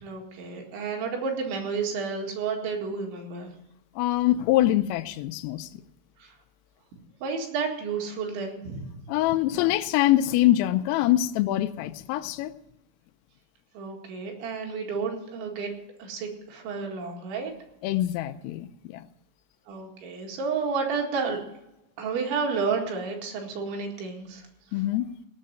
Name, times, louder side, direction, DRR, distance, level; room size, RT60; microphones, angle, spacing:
voice 1, 0.0-3.5 6.2-6.3 7.2-8.9 13.7-15.7 16.0-17.5 19.7-21.4 22.0-24.4, right 5 dB, 70° right, 1 dB, 4.1 m, -31 dB
voice 2, 4.0-5.7 9.1-12.5 17.8-19.0 24.7-25.1, left 14 dB, 85° left, 10 dB, 3.3 m, -24 dB
18.0 x 6.6 x 7.6 m, 0.89 s
omnidirectional pair, 5.8 m